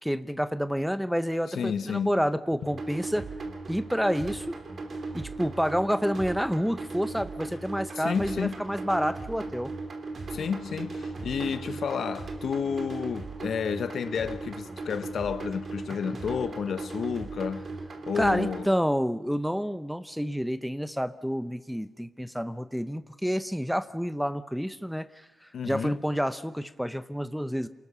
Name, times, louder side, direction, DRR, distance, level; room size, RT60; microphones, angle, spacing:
voice 1, 0.0-3.3 3.7-4.6 5.1-9.7 18.2-25.1 25.6-27.7, equal, ahead, 0.8 m, -29 dB
voice 2, 1.5-2.2 7.9-8.7 10.3-17.7 18.1-18.7 25.5-26.0, left 6 dB, 55° left, 1.2 m, -31 dB
sound 1, 2.7-18.7, right 3 dB, 35° right, 3.1 m, -37 dB
28.0 x 19.0 x 6.9 m
wide cardioid pair, 175°, 0 cm